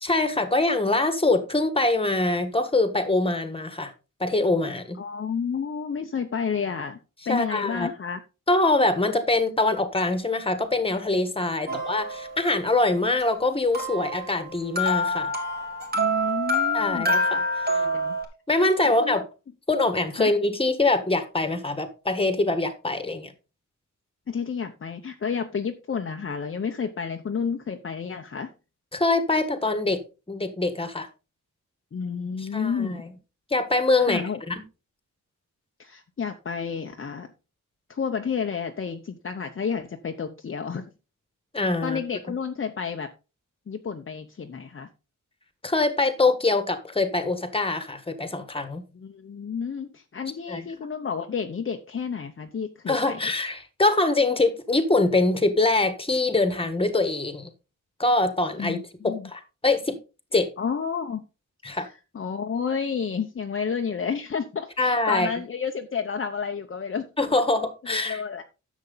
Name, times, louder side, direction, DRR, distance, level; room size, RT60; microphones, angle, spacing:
voice 1, 0.0-3.9 4.2-5.0 7.3-7.9 8.5-15.3 16.7-17.9 18.5-19.2 19.7-23.3 28.9-30.0 30.3-31.1 32.4-33.1 33.5-34.6 41.5-42.0 45.6-48.8 50.5-50.6 52.9-57.5 58.0-58.8 59.0-60.0 60.3-60.5 61.6-61.9 64.8-65.3 67.2-68.2, left 2 dB, 20° left, 1.5 m, -24 dB
voice 2, 5.0-7.0 7.3-8.2 11.6-11.8 15.9-17.1 17.7-18.2 18.8-19.2 20.2-20.3 24.3-28.5 31.9-33.1 34.0-34.4 35.8-37.3 37.9-40.9 41.8-43.1 43.7-44.9 48.9-53.3 58.6-59.3 60.6-61.2 61.7-67.0 67.9-68.4, left 6 dB, 40° left, 0.8 m, -31 dB
sound 1, 11.7-12.6 13.7-18.2, equal, 30° right, 3.0 m, -26 dB
10.5 x 7.2 x 3.9 m
wide cardioid pair, 140°, 31 cm